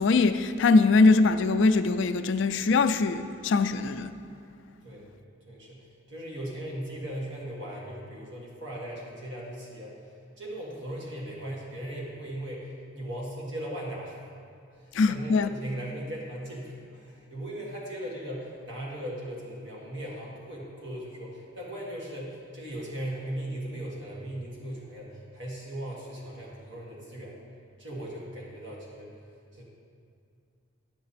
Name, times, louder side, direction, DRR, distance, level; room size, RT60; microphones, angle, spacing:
voice 1, 0.0-4.1 14.9-15.5, left 3 dB, 65° left, 0.3 m, -22 dB
voice 2, 5.5-10.0 10.4-14.2 14.8-27.4 27.8-29.1 29.5-29.6, right 1 dB, 60° right, 1.7 m, -38 dB
9.3 x 6.8 x 4.1 m
head